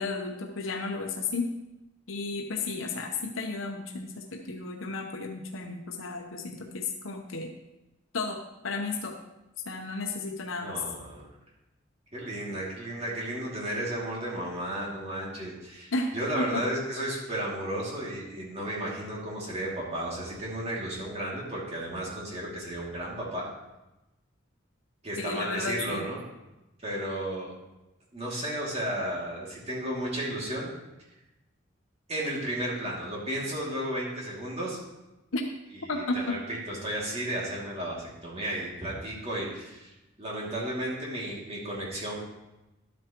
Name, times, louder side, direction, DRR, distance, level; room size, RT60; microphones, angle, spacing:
voice 1, 0.0-1.5 2.1-7.5 8.1-8.4 8.6-9.2 9.7-10.8 15.9-16.1 16.4-16.6 25.2-26.0 35.3-35.4 35.9-36.4, left 3 dB, 90° left, 3 dB, 0.9 m, -33 dB
voice 2, 10.6-11.3 12.1-23.4 25.0-26.2 26.8-27.5 28.1-30.7 32.1-34.8 35.9-42.2, right 1 dB, 30° right, -5 dB, 2.5 m, -33 dB
11.0 x 8.4 x 3.0 m, 0.98 s
head